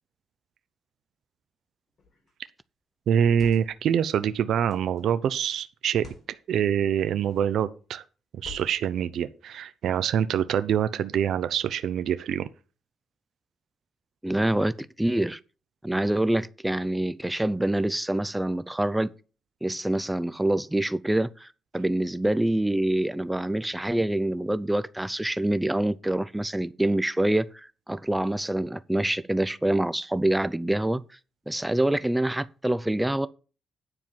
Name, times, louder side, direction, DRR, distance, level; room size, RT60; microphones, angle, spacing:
sound 1, 2.0-2.3 3.1-3.9 4.7-5.0 5.9-6.3 7.2-7.6 8.4-9.0, left 5 dB, 50° left, 4.2 m, -47 dB
voice 1, 3.1-8.0 8.3-12.5, right 9 dB, 70° right, 0.6 m, -25 dB
voice 2, 14.2-15.4 15.8-19.1 19.6-31.0 31.5-33.3, right 1 dB, 10° right, 0.5 m, -26 dB
9.8 x 4.6 x 7.2 m
cardioid pair, 90°, 0 cm